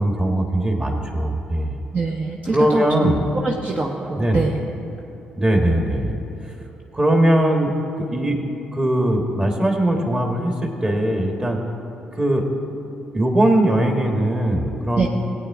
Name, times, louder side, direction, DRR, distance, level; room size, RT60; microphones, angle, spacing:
voice 1, 0.0-1.8 2.5-3.2 4.2-4.4 5.3-6.2 6.9-11.6 12.1-12.4 13.1-15.1, right 1 dB, 25° right, 2 dB, 1.8 m, -20 dB
voice 2, 1.9-3.1 3.4-4.6 15.0-15.1, right 3 dB, 40° right, -1 dB, 1.0 m, -24 dB
16.5 x 8.7 x 3.7 m, 2.9 s
supercardioid pair, 55°, 4 cm